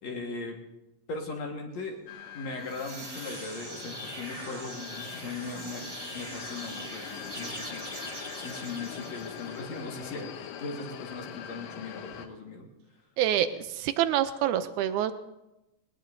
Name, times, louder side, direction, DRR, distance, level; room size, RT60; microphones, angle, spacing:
voice 1, 0.0-0.5 1.1-2.0 2.3-5.8 6.1-7.8 8.3-12.7, left 3 dB, 55° left, 1 dB, 2.5 m, -39 dB
sound 1, 2.1-12.3, left 9 dB, 75° left, 2.4 m, -43 dB
sound 2, 2.4-9.9, right 1 dB, 40° right, 0.5 m, -42 dB
voice 2, 13.2-15.1, right 11 dB, 80° right, 11 dB, 1.8 m, -26 dB
21.0 x 19.5 x 2.7 m, 0.93 s
omnidirectional pair, 4.1 m